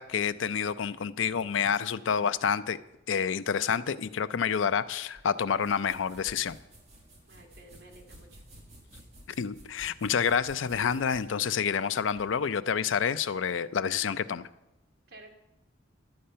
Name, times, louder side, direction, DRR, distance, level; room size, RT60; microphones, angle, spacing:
voice 1, 0.0-2.8 3.1-6.6 9.4-14.5, left 7 dB, 75° left, 14 dB, 0.5 m, -28 dB
sound 1, 5.1-12.3, right 1 dB, 35° right, 1.9 m, -53 dB
voice 2, 7.3-8.4 15.1-15.3, right 2 dB, 55° right, 1 dB, 2.0 m, -52 dB
11.5 x 7.7 x 5.6 m, 0.94 s
head